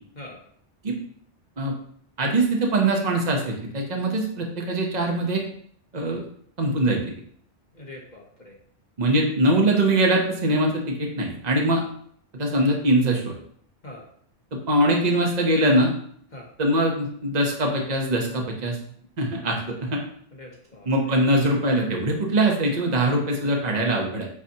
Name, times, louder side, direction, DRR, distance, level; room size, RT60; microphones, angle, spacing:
voice 1, 2.2-5.4 5.9-6.2 6.6-7.0 9.0-11.8 12.3-13.3 14.5-15.9 16.6-18.8 19.2-20.0 20.9-24.3, right 1 dB, 35° right, 1 dB, 1.1 m, -22 dB
voice 2, 7.7-8.6 13.8-14.1 16.3-16.5 20.3-20.9, left 1 dB, 40° left, -1 dB, 1.1 m, -42 dB
8.4 x 4.0 x 2.9 m, 0.62 s
omnidirectional pair, 1.2 m